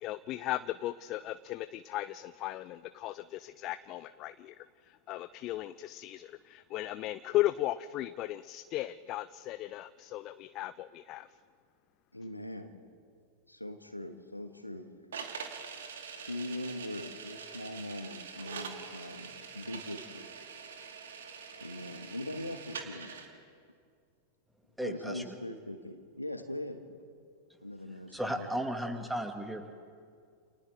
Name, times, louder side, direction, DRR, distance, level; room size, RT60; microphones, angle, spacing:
voice 1, 0.0-11.3, left 15 dB, 35° left, 15 dB, 0.5 m, -36 dB
voice 2, 12.1-12.7 13.5-14.9 16.1-20.3 21.6-23.1 24.8-26.8 27.6-28.5, left 1 dB, 85° left, 8 dB, 1.5 m, -41 dB
sound 1, 15.1-23.3, right 6 dB, 65° right, 2.4 m, -44 dB
voice 3, 24.8-25.4 28.1-29.7, equal, 5° right, 5 dB, 2.0 m, -35 dB
29.5 x 29.0 x 3.5 m, 2.2 s
figure-of-eight pair, 90°, 0 cm